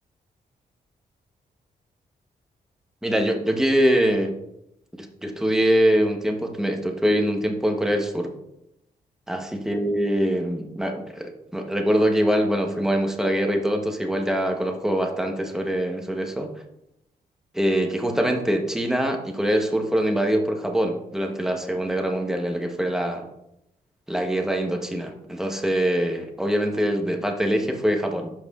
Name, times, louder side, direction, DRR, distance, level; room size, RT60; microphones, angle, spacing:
voice 1, 3.0-4.4 5.0-8.3 9.3-16.5 17.5-23.2 24.1-28.3, equal, 5° right, 3 dB, 0.9 m, -23 dB
12.0 x 4.8 x 2.4 m, 0.81 s
wide cardioid pair, 130°, 16 cm